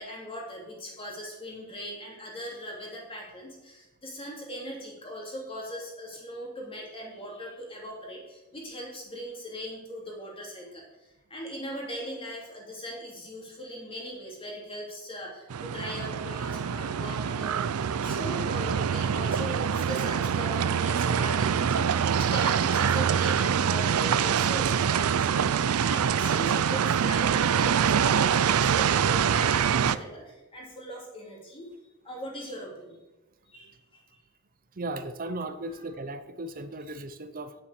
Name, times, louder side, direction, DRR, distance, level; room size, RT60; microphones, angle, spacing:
voice 1, 0.0-10.8 11.3-31.7 32.0-33.0 33.5-33.7 35.7-35.8, equal, 25° left, -2 dB, 3.1 m, -40 dB
sound 1, 15.5-30.0, right 7 dB, 85° right, 0.4 m, -25 dB
voice 2, 34.7-37.5, right 2 dB, 40° right, 10 dB, 0.7 m, -36 dB
9.2 x 7.2 x 6.7 m, 1.0 s
head